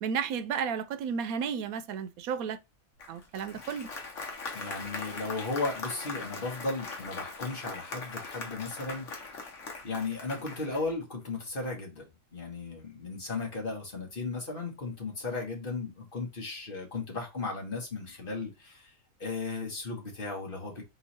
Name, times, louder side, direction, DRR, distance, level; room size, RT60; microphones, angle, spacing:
voice 1, 0.0-2.6 3.1-3.9, right 7 dB, 90° right, 1.0 m, -33 dB
Applause, 3.0-10.9, left 4 dB, 60° left, 1.3 m, -41 dB
voice 2, 4.5-9.1 9.8-12.1 12.3-18.9 19.2-20.8, left 3 dB, 40° left, 1.5 m, -35 dB
3.8 x 3.0 x 4.0 m
omnidirectional pair, 1.5 m